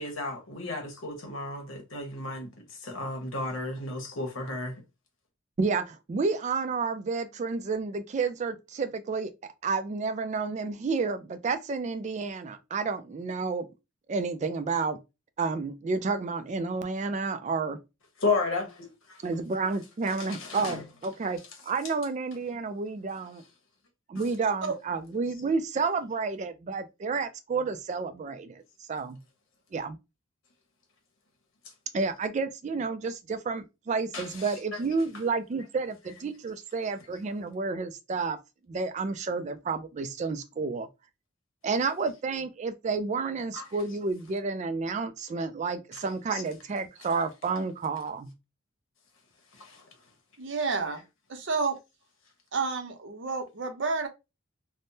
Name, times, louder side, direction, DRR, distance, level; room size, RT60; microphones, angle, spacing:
voice 1, 0.0-4.7 18.2-19.2 20.2-20.8 34.1-34.8 43.5-43.6 46.3-46.4 49.5-49.9, left 3 dB, 80° left, 1.1 m, -33 dB
voice 2, 5.6-13.7 14.1-15.0 15.4-17.8 19.2-23.4 24.1-29.2 29.7-30.0 31.9-38.4 38.7-40.9 41.6-48.3, right 4 dB, 35° right, 0.3 m, -30 dB
voice 3, 50.4-51.0 51.3-51.8 52.5-54.1, right 4 dB, 65° right, 0.6 m, -30 dB
3.4 x 2.1 x 2.7 m
head